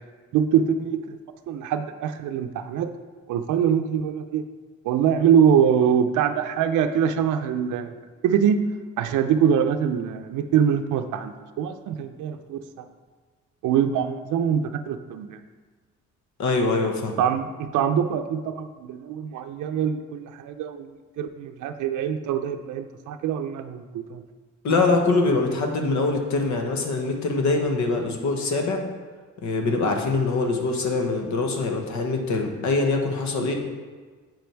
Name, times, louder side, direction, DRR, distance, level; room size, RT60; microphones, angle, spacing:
voice 1, 0.3-1.2 1.5-2.9 3.3-4.4 4.8-7.9 8.2-8.6 9.0-12.8 13.6-15.4 17.2-20.9 21.2-24.2, right 8 dB, 80° right, 7 dB, 0.5 m, -23 dB
voice 2, 16.4-17.2 24.6-28.8 29.4-33.5, left 3 dB, 70° left, 3 dB, 1.3 m, -23 dB
7.7 x 5.2 x 4.5 m, 1.4 s
cardioid pair, 90°, 30 cm